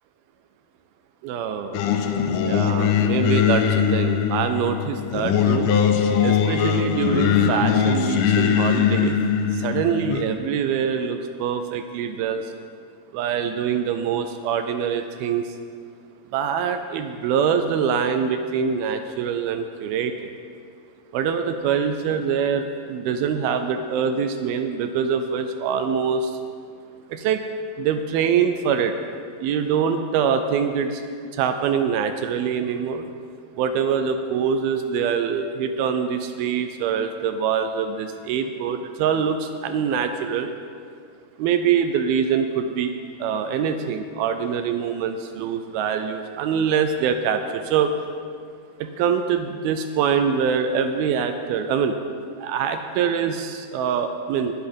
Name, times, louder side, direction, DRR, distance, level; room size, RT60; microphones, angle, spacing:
voice 1, 1.2-1.8 2.4-3.6 3.9-5.7 6.2-9.2 9.6-12.4 13.1-15.5 16.3-20.1 21.1-26.2 27.1-27.4 27.8-28.9 29.4-31.0 31.4-33.0 33.6-40.5 41.4-42.9 43.2-47.9 48.8-52.0 52.4-54.5, right 7 dB, 80° right, 8 dB, 2.3 m, -24 dB
Singing, 1.7-10.2, left 8 dB, 90° left, 1.8 m, -21 dB
19.5 x 6.9 x 5.3 m, 2.2 s
omnidirectional pair, 4.6 m